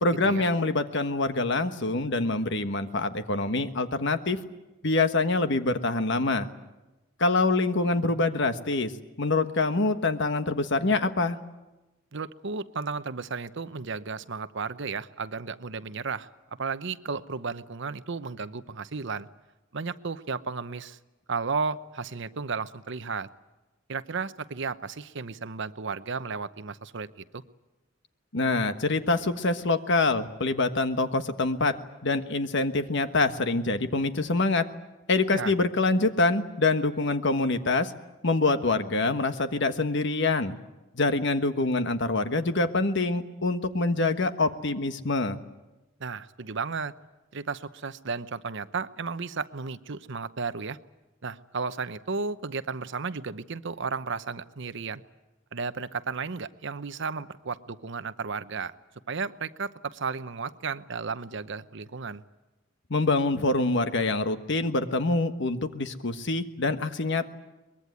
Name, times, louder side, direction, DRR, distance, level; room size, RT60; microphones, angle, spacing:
voice 1, 0.0-4.4 4.8-6.5 7.2-8.9 9.2-11.4 28.3-31.8 32.0-34.7 35.1-37.9 38.2-40.5 40.9-45.4 62.9-67.3, left 3 dB, 60° left, 9 dB, 1.4 m, -25 dB
voice 2, 12.1-16.3 16.6-19.3 19.7-21.0 21.3-23.3 23.9-27.4 35.3-35.5 46.0-46.9 47.3-50.8 51.2-55.0 55.5-58.7 59.1-62.2, right 4 dB, 65° right, 13 dB, 0.8 m, -33 dB
23.0 x 21.5 x 9.6 m, 1.1 s
head